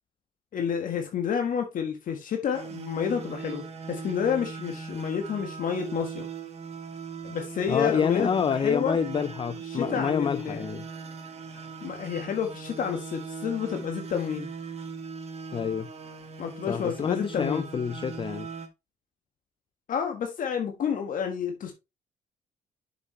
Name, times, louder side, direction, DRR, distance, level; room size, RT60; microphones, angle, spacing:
voice 1, 0.5-6.3 7.2-9.0 9.7-10.6 11.8-14.5 16.4-17.7 19.9-21.7, left 7 dB, 60° left, 1.5 m, -30 dB
sound 1, 2.5-18.7, right 5 dB, 45° right, 1.5 m, -39 dB
voice 2, 7.7-10.8 15.5-15.9 16.7-18.5, left 7 dB, 35° left, 0.5 m, -27 dB
6.8 x 6.8 x 3.2 m
cardioid pair, 85°, 15 cm